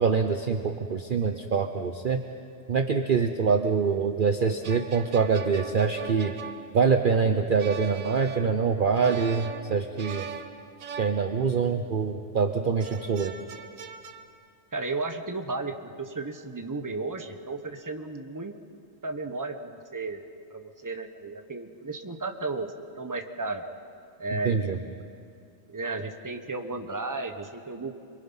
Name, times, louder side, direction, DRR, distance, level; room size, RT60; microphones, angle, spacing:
voice 1, 0.0-2.2 2.7-6.3 6.7-10.3 11.0-13.3 24.4-24.8, right 5 dB, 45° right, 6 dB, 0.9 m, -25 dB
sound 1, 4.4-11.9 12.8-14.3, right 6 dB, 80° right, 1.5 m, -42 dB
voice 2, 14.7-18.5 19.0-20.2 20.5-23.6 24.2-24.7 25.7-27.9, right 3 dB, 15° right, 6 dB, 1.1 m, -34 dB
26.5 x 23.0 x 5.7 m, 2.5 s
omnidirectional pair, 1.4 m